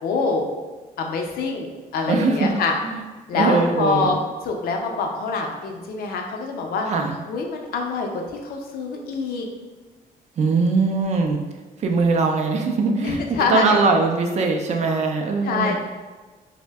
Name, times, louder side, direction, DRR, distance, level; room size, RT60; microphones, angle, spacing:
voice 1, 0.0-0.5 1.0-2.7 3.3-4.2 4.4-6.9 7.3-9.5 13.0-13.8 15.4-15.8, left 4 dB, 70° left, 2 dB, 0.5 m, -25 dB
voice 2, 2.1-2.5 3.3-4.2 6.9-7.1 10.4-11.4 11.8-15.8, right 4 dB, 45° right, 3 dB, 0.4 m, -21 dB
2.6 x 2.1 x 3.3 m, 1.3 s
cardioid pair, 125°, 16 cm